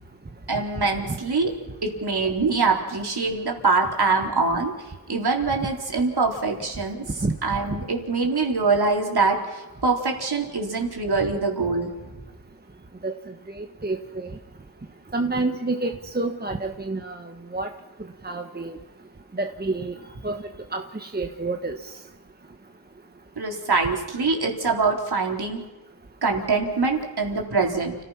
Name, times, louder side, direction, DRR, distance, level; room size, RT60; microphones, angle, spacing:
voice 1, 0.5-1.5 1.8-4.7 5.1-7.0 7.4-12.1 23.4-25.6 26.2-28.0, right 4 dB, 50° right, 0 dB, 4.2 m, -24 dB
voice 2, 13.6-14.3 15.1-17.2 17.5-17.7 18.2-18.8 19.4-19.9 20.2-20.4 20.7-21.8, right 3 dB, 20° right, 5 dB, 1.3 m, -28 dB
30.0 x 15.5 x 5.9 m, 1.1 s
cardioid pair, 80°, 47 cm